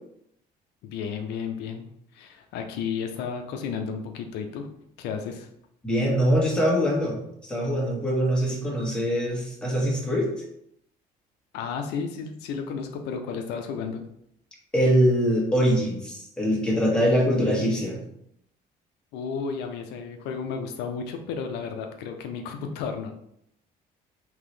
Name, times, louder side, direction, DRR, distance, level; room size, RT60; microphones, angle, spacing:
voice 1, 0.8-1.8 2.1-4.7 5.0-5.5 11.5-14.0 19.1-23.1, left 6 dB, 85° left, 5 dB, 0.5 m, -33 dB
voice 2, 5.8-10.4 14.7-18.0, equal, 5° left, -3 dB, 1.3 m, -23 dB
3.7 x 2.9 x 3.2 m, 0.73 s
cardioid pair, 110°, 17 cm